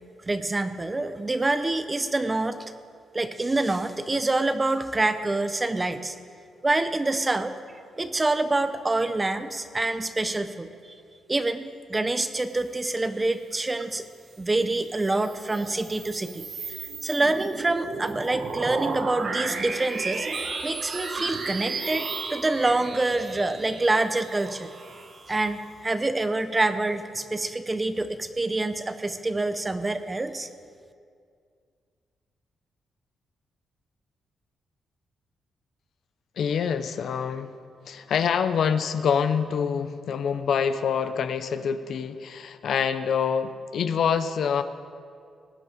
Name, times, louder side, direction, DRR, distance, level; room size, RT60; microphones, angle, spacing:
voice 1, 0.3-2.7 3.1-6.1 6.6-7.6 8.0-10.7 11.3-14.0 14.4-24.7 25.3-30.5, right 2 dB, 15° right, 10 dB, 0.6 m, -26 dB
sound 1, 14.8-25.7, right 4 dB, 45° right, 1.1 m, -34 dB
voice 2, 36.4-37.5 37.9-44.6, left 7 dB, 60° left, 11 dB, 0.6 m, -26 dB
18.5 x 9.5 x 5.0 m, 2.2 s
wide cardioid pair, 155°, 0 cm